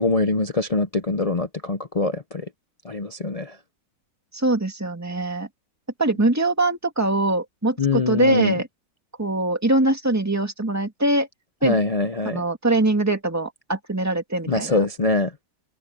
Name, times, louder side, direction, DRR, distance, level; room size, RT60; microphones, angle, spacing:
voice 1, 0.0-2.5 2.8-3.6 7.8-8.6 11.6-12.4 14.5-15.3, left 3 dB, 75° left, 0.3 m, -23 dB
voice 2, 4.3-5.5 6.0-8.7 9.2-11.3 11.6-11.8 12.3-14.9, right 2 dB, 10° right, 2.2 m, -22 dB
omnidirectional pair, 1.9 m